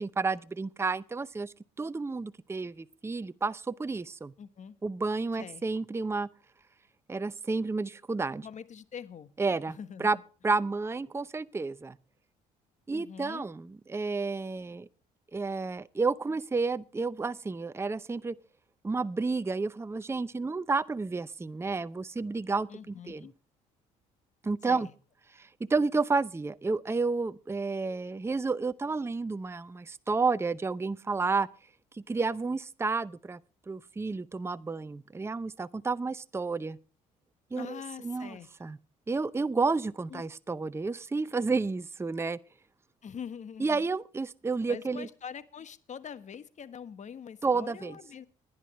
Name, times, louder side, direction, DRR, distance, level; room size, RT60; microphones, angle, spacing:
voice 1, 0.0-4.3 4.8-6.3 7.1-8.5 9.4-10.2 10.4-12.0 12.9-14.9 15.3-18.4 18.8-23.3 24.4-24.9 25.3-31.5 31.9-33.4 33.7-36.8 37.5-38.4 38.6-38.8 39.1-42.4 43.6-45.1 47.4-48.0, right 4 dB, 15° right, 0.6 m, -31 dB
voice 2, 4.4-4.8 5.4-5.6 8.4-9.3 9.8-10.2 12.9-13.5 22.7-23.3 24.6-24.9 37.6-38.5 40.1-40.2 43.0-43.8 44.7-48.3, left 7 dB, 45° left, 1.4 m, -44 dB
20.5 x 10.5 x 3.2 m
supercardioid pair, 65°, 17 cm